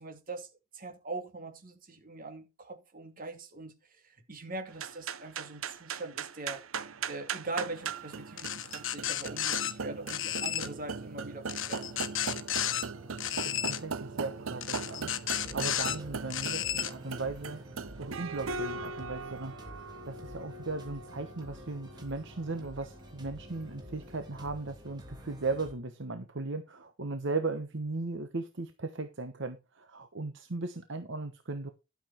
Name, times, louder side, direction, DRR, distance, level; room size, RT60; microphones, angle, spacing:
voice 1, 0.0-6.6 7.1-11.9, right 3 dB, 45° right, 2.6 m, -42 dB
sound 1, 4.7-24.2, right 5 dB, 80° right, 0.8 m, -40 dB
sound 2, 8.4-9.7 10.1-10.7 11.5-12.8 13.2-13.8 14.6-16.0 16.3-16.9, left 11 dB, 65° left, 1.2 m, -33 dB
sound 3, 10.5-14.8 15.4-25.7, equal, 20° right, 2.7 m, -51 dB
voice 2, 13.4-19.7 20.1-31.7, right 3 dB, 60° right, 1.1 m, -37 dB
12.0 x 7.2 x 4.4 m
head